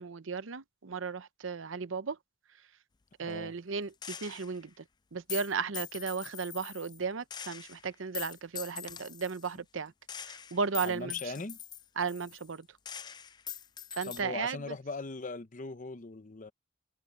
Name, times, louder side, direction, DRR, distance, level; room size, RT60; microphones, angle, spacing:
voice 1, 0.0-2.2 3.2-4.8 5.1-9.9 10.2-11.2 12.0-12.7 13.9-14.7, right 5 dB, 75° right, 0.8 m, -35 dB
voice 2, 3.2-3.5 10.8-11.6 14.0-16.5, left 3 dB, 40° left, 0.8 m, -39 dB
Gunshot gunfire, 4.0-4.6 5.3-7.0 7.3-9.5 10.1-12.6 12.9-14.2, left 9 dB, 20° left, 0.4 m, -43 dB
head